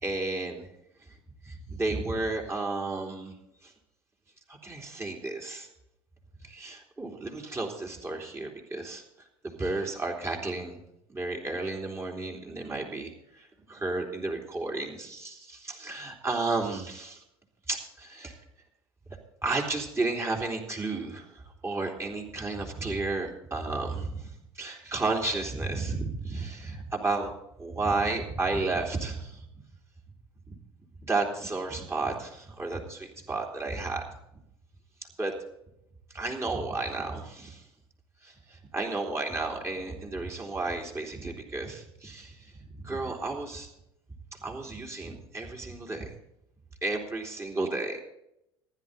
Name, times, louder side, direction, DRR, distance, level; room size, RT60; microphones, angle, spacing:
voice 1, 0.0-0.7 1.4-3.3 3.6-3.7 4.5-5.7 6.4-9.0 9.4-10.8 11.1-17.2 17.7-18.4 19.4-27.3 27.6-29.4 30.5-30.6 31.0-34.0 35.2-35.3 36.1-37.6 38.2-43.7 44.3-46.1 46.8-48.0, right 3 dB, 20° right, 1 dB, 3.3 m, -32 dB
15.5 x 11.0 x 4.0 m, 0.81 s
figure-of-eight pair, 65°, 13 cm